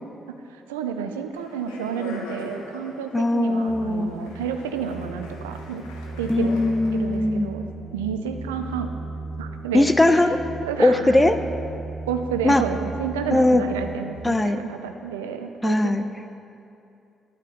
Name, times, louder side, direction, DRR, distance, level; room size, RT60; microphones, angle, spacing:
voice 1, 0.5-5.8 6.2-6.5 6.9-7.6 7.9-8.9 9.4-9.9 10.2-10.3 10.6-11.3 12.1-15.9, right 7 dB, 90° right, 6 dB, 0.5 m, -30 dB
Speech, 1.3-7.1, left 2 dB, 85° left, 1.0 m, -42 dB
voice 2, 3.1-4.1 6.3-7.5 9.7-10.4 10.8-11.4 12.4-12.6 13.3-13.6 14.2-14.6 15.6-16.0, left 2 dB, 20° left, 9 dB, 0.7 m, -19 dB
sound 1, 3.7-14.2, right 3 dB, 45° left, 1.2 m, -36 dB
11.5 x 8.9 x 3.9 m, 2.7 s
hypercardioid pair, 45°, 0 cm